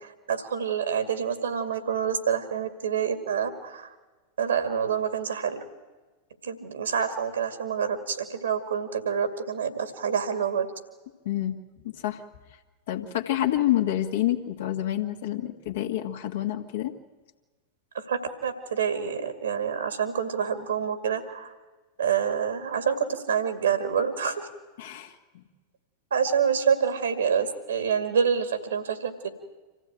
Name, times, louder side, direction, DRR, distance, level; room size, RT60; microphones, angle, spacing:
voice 1, 0.0-3.9 4.4-5.6 6.4-10.7 17.9-21.5 22.0-24.5 26.1-29.3, right 7 dB, 70° right, 9 dB, 2.2 m, -27 dB
voice 2, 11.3-11.6 11.8-12.2 12.9-16.9 24.8-25.4, left 13 dB, 55° left, 4 dB, 1.8 m, -28 dB
26.5 x 15.5 x 9.0 m, 1.3 s
figure-of-eight pair, 90°, 0 cm